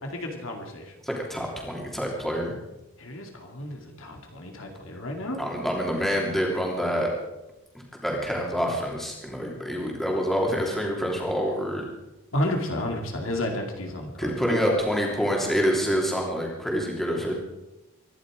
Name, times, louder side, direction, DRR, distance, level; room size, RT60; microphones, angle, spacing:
voice 1, 0.0-0.9 3.0-5.4 12.3-14.7, left 1 dB, 65° left, 2 dB, 2.5 m, -31 dB
voice 2, 1.0-2.5 5.4-7.2 8.0-11.8 14.2-17.3, equal, ahead, -1 dB, 3.1 m, -27 dB
24.5 x 11.5 x 4.9 m, 0.97 s
head